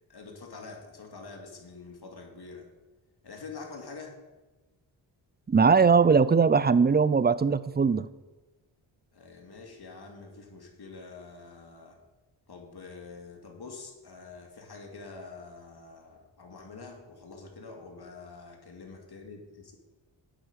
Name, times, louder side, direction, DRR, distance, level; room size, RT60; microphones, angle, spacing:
voice 1, 0.1-2.7 3.2-4.2 9.1-12.0 12.5-19.8, left 4 dB, 50° left, 2 dB, 2.3 m, -46 dB
voice 2, 5.5-8.1, right 5 dB, 20° right, 16 dB, 0.5 m, -20 dB
8.8 x 6.0 x 6.9 m, 1.1 s
supercardioid pair, 45°, 48 cm